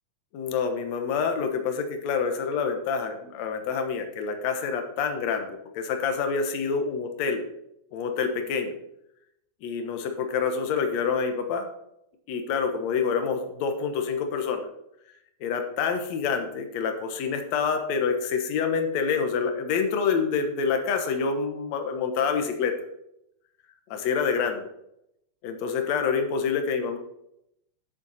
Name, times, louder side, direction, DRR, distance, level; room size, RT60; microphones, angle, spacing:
voice 1, 0.3-7.4 7.9-8.8 9.6-11.7 12.3-14.7 15.4-22.8 23.9-24.7 25.4-27.0, left 5 dB, 70° left, 6 dB, 2.3 m, -27 dB
9.5 x 6.9 x 5.5 m, 0.79 s
omnidirectional pair, 3.4 m